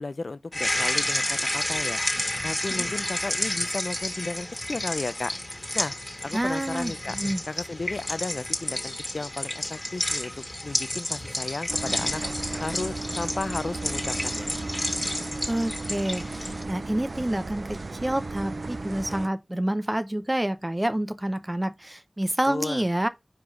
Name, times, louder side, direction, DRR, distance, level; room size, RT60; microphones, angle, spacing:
voice 1, 0.0-2.0 2.4-5.4 5.7-5.9 6.2-7.2 7.5-10.3 10.6-12.2 12.6-14.5 22.5-22.8, left 3 dB, 80° left, 0.4 m, -34 dB
sound 1, 0.5-16.6, left 1 dB, 20° left, 1.7 m, -30 dB
voice 2, 6.3-7.4 15.5-23.1, right 1 dB, 25° right, 0.7 m, -28 dB
sound 2, 11.7-19.3, right 3 dB, 75° right, 0.3 m, -35 dB
4.8 x 3.8 x 5.1 m
wide cardioid pair, 55°, 0 cm